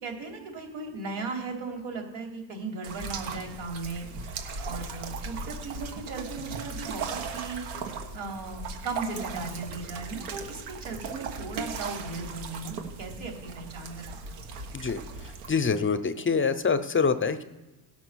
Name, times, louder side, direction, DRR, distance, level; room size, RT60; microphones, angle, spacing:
voice 1, 0.0-7.6 8.1-14.2, right 3 dB, 70° right, 2 dB, 3.3 m, -37 dB
sound 1, 2.8-15.6, right 4 dB, 90° right, 1.6 m, -38 dB
voice 2, 15.5-17.4, left 5 dB, 25° left, 11 dB, 0.7 m, -25 dB
16.5 x 6.1 x 6.3 m, 1.1 s
supercardioid pair, 85°, 45 cm